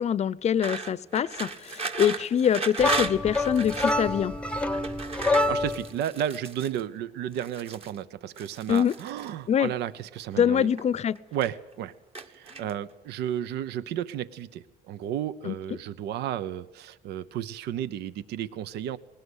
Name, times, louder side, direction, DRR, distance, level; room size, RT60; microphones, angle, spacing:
voice 1, 0.0-4.3 8.7-8.9 9.5-9.7 10.4-11.2 15.4-15.5, left 8 dB, 40° left, 20 dB, 0.7 m, -24 dB
sound 1, 0.6-4.0 4.7-6.8 7.3-8.0 8.4-9.3 10.2-10.9 11.2-11.7 12.2-12.9, right 4 dB, 35° right, 1.6 m, -35 dB
sound 2, 2.8-5.9, left 2 dB, 5° left, 0.8 m, -27 dB
voice 2, 5.2-10.7 11.3-11.9 12.3-19.0, right 10 dB, 80° right, 16 dB, 0.8 m, -33 dB
20.5 x 18.5 x 8.1 m, 1.0 s
cardioid pair, 110°, 17 cm